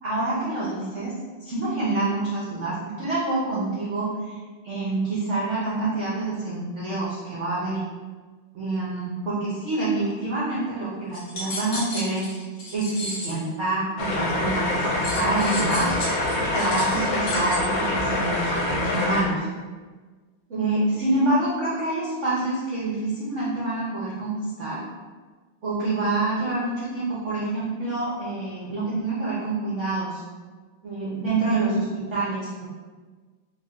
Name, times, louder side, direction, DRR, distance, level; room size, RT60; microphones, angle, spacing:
voice 1, 0.0-4.3 4.6-7.8 8.5-12.3 12.7-15.9 16.5-19.5 20.5-24.8 25.6-30.2 30.8-32.7, right 2 dB, 80° right, -7 dB, 0.6 m, -27 dB
sound 1, 11.1-13.4 15.0-17.6, left 1 dB, 50° left, 1.1 m, -34 dB
sound 2, 14.0-19.2, left 1 dB, 75° left, 1.3 m, -25 dB
3.4 x 2.6 x 3.5 m, 1.4 s
omnidirectional pair, 2.3 m